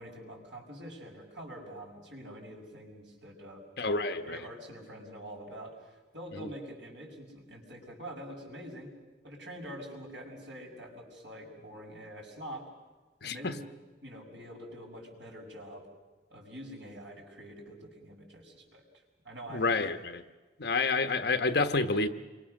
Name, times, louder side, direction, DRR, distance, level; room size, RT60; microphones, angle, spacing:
voice 1, 0.0-8.9 9.2-12.7 13.2-13.6 14.0-15.9 16.3-18.8 19.2-19.8, equal, 90° right, 6.3 m, -45 dB
voice 2, 3.8-4.4 6.4-6.5 13.2-13.5 19.5-20.2 20.6-22.1, left 3 dB, 65° left, 1.3 m, -29 dB
28.0 x 24.0 x 6.6 m
head